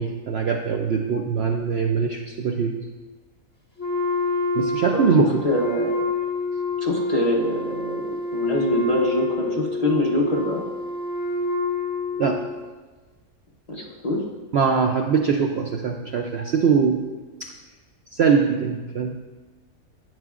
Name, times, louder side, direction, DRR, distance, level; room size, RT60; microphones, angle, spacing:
voice 1, 0.0-2.8 4.5-5.4 12.2-12.4 14.5-17.0 17.4-17.5 18.1-19.2, right 6 dB, 65° right, 3 dB, 0.6 m, -22 dB
Wind instrument woodwind instrument, 3.8-12.6, left 2 dB, 5° left, 1.5 m, -27 dB
voice 2, 4.9-6.0 6.8-10.6 13.7-14.2, left 1 dB, 30° left, -2 dB, 0.9 m, -24 dB
10.5 x 8.9 x 2.4 m, 1.3 s
omnidirectional pair, 1.5 m